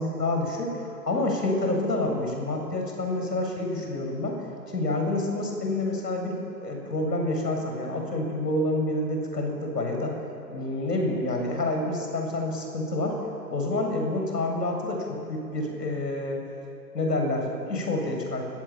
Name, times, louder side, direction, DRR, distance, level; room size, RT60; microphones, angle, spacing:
voice 1, 0.0-4.4 4.7-10.1 10.5-13.2 13.5-16.4 16.9-18.4, left 2 dB, 85° left, 2 dB, 7.7 m, -28 dB
28.5 x 22.0 x 9.0 m, 2.6 s
hypercardioid pair, 150°, 48 cm